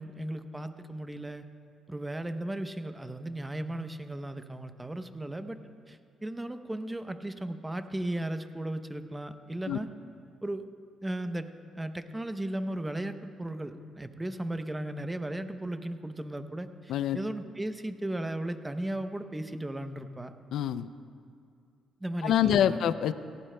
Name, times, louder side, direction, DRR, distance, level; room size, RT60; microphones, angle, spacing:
voice 1, 0.0-1.4 1.9-5.6 5.9-9.9 10.4-10.7 11.0-11.5 11.8-20.3 22.0-22.8, right 1 dB, 15° right, 9 dB, 0.7 m, -36 dB
voice 2, 20.5-20.9 22.2-23.1, left 10 dB, 75° left, 14 dB, 0.4 m, -25 dB
18.0 x 15.5 x 2.2 m, 2.3 s
cardioid pair, 90°, 0 cm